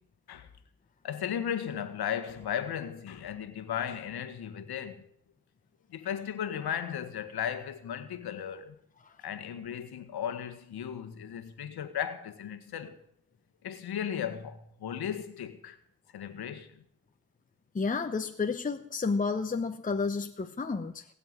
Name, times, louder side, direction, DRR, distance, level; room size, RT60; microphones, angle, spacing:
voice 1, 1.0-5.0 5.9-8.8 9.2-13.0 13.6-15.8 16.1-16.7, left 9 dB, 80° left, 1.7 m, -36 dB
voice 2, 17.7-21.0, left 4 dB, 20° left, 1.0 m, -31 dB
20.5 x 7.1 x 9.8 m
cardioid pair, 105°, 38 cm